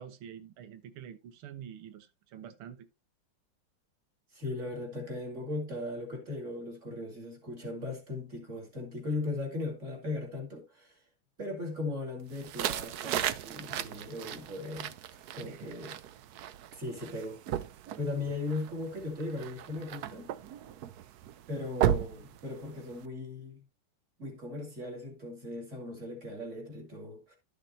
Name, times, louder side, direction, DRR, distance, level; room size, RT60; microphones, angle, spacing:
voice 1, 0.0-2.9 15.4-15.7, right 9 dB, 90° right, 1.8 m, -47 dB
voice 2, 4.3-11.0 11.4-14.9 15.3-16.0 16.7-17.4 18.0-20.3 21.5-23.6 24.2-27.4, left 2 dB, 35° right, 3.1 m, -38 dB
sound 1, 12.3-23.0, right 11 dB, 70° right, 0.9 m, -36 dB
12.5 x 6.6 x 2.8 m
omnidirectional pair, 2.3 m